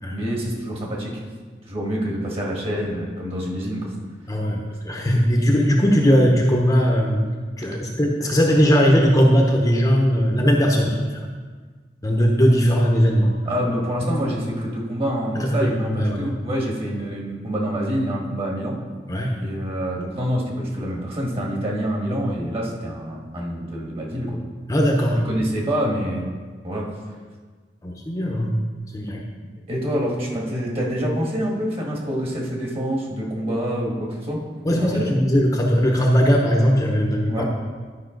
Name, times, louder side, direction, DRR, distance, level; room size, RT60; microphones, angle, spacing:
voice 1, 0.1-1.2 1.7-3.9 13.5-18.8 19.4-24.4 25.1-26.3 26.6-26.9 29.7-34.4 34.7-35.2 37.3-37.4, equal, 35° right, -2 dB, 1.9 m, -26 dB
voice 2, 4.3-7.3 7.6-11.3 12.0-13.4 15.4-16.3 19.1-19.4 24.7-25.2 27.8-28.5 28.9-29.2 34.6-37.4, equal, 20° left, -1 dB, 0.9 m, -19 dB
12.0 x 5.5 x 3.9 m, 1.5 s
head